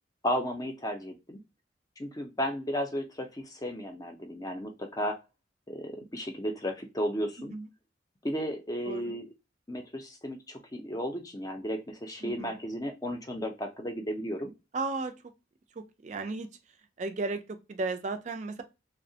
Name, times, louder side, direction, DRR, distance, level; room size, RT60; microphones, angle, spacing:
voice 1, 0.2-1.4 2.0-5.2 5.7-7.5 8.2-9.3 9.7-14.5, equal, 20° left, 0.5 m, -34 dB
voice 2, 7.4-7.7 8.9-9.2 12.2-12.6 14.7-15.1 16.0-16.5 17.0-18.6, right 3 dB, 40° right, 0.4 m, -34 dB
2.8 x 2.1 x 2.7 m
head